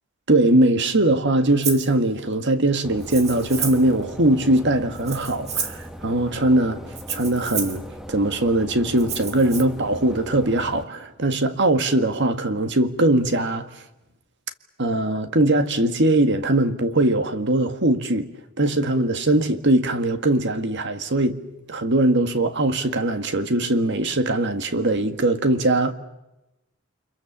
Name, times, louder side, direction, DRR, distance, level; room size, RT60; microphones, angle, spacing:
voice 1, 0.3-6.8 7.1-13.7 14.8-18.3 18.6-21.4 21.7-25.9, right 1 dB, 60° right, 1.8 m, -21 dB
Rattle (instrument), 1.6-1.9 3.0-3.9 4.9-5.9 6.9-7.8 9.0-9.6, right 7 dB, 30° right, 2.0 m, -31 dB
sound 1, 2.8-10.8, equal, ahead, 1.3 m, -39 dB
30.0 x 25.0 x 7.3 m
head